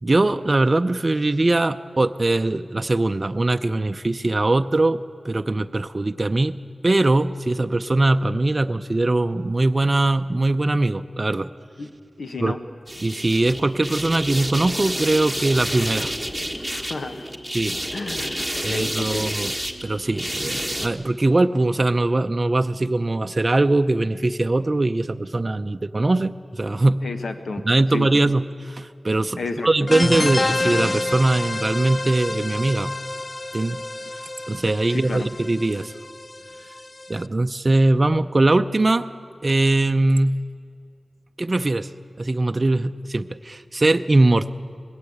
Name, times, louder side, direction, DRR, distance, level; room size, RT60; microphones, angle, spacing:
voice 1, 0.0-6.6 6.8-11.5 12.4-12.6 13.0-16.1 17.5-17.8 18.6-19.5 19.8-27.0 27.7-32.9 33.5-33.8 34.5-35.9 37.1-39.1 39.4-40.4 41.4-41.9 42.2-44.6, right 2 dB, 35° right, 8 dB, 0.5 m, -21 dB
voice 2, 12.2-12.6 16.7-17.3 17.9-19.2 27.0-27.6 27.9-28.1 29.4-29.7 34.9-35.3, left 3 dB, 85° left, 7 dB, 1.3 m, -31 dB
sound 1, 12.9-20.9, equal, ahead, 1.4 m, -29 dB
sound 2, 29.9-37.2, left 2 dB, 35° left, 0.5 m, -28 dB
20.5 x 17.0 x 8.6 m, 2.4 s
wide cardioid pair, 85°, 0 cm